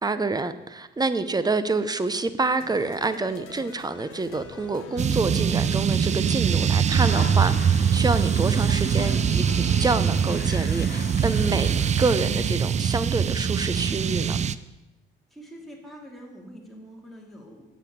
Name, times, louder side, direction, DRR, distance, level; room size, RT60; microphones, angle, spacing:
voice 1, 0.0-14.4, right 3 dB, 20° right, 13 dB, 0.7 m, -27 dB
sound 1, 2.6-11.2, left 7 dB, 90° left, 1.0 m, -45 dB
sound 2, 5.0-14.5, right 7 dB, 35° right, 0.4 m, -23 dB
sound 3, 6.9-11.9, left 8 dB, 55° left, 0.8 m, -40 dB
voice 2, 15.3-17.6, equal, ahead, -2 dB, 2.7 m, -44 dB
8.2 x 7.4 x 6.7 m, 1.0 s
cardioid pair, 90°, 20 cm